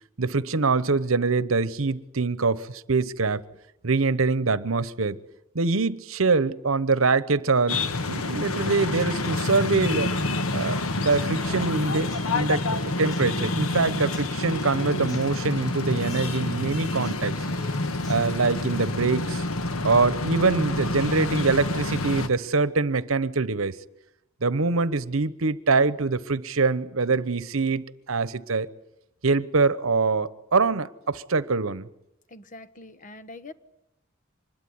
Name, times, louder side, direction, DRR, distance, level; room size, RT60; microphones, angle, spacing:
voice 1, 0.2-3.4 3.8-5.2 5.5-10.1 10.5-12.6 13.0-17.3 18.1-19.4 19.8-23.8 24.4-28.7 29.2-31.9, right 4 dB, 70° right, 17 dB, 1.0 m, -24 dB
sound 1, 7.7-22.3, left 2 dB, 85° left, 1.4 m, -28 dB
Human voice / Acoustic guitar, 10.6-18.6, left 1 dB, 20° left, 6.7 m, -49 dB
voice 2, 32.3-33.5, left 2 dB, 40° left, 12 dB, 1.2 m, -43 dB
25.0 x 21.5 x 9.7 m, 0.84 s
head